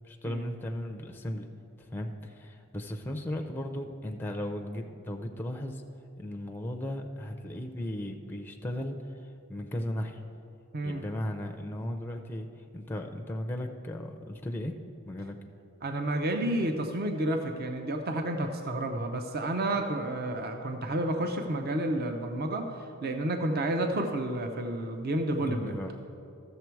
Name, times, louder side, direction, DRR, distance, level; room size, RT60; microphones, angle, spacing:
voice 1, 0.0-1.5 1.9-5.8 6.2-9.0 9.5-10.2 10.8-12.5 12.7-14.7 15.1-15.4 25.4-25.9, left 1 dB, 10° left, 3 dB, 0.5 m, -36 dB
voice 2, 10.7-11.0 15.8-22.7 23.0-25.8, right 1 dB, 45° right, 5 dB, 0.6 m, -30 dB
13.0 x 6.8 x 4.6 m, 2.7 s
head